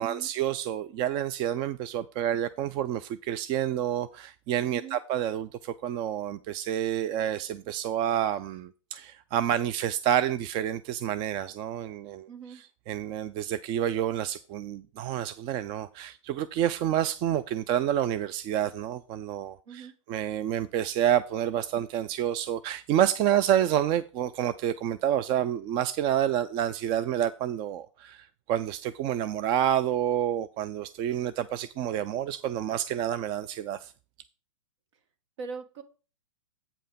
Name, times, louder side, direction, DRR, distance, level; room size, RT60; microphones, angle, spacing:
voice 1, 0.0-33.9, right 11 dB, 30° right, 0.4 m, -29 dB
voice 2, 12.3-12.6 19.7-19.9 35.4-35.8, right 5 dB, 60° right, 1.8 m, -41 dB
8.4 x 5.5 x 5.1 m
hypercardioid pair, 120°, 17 cm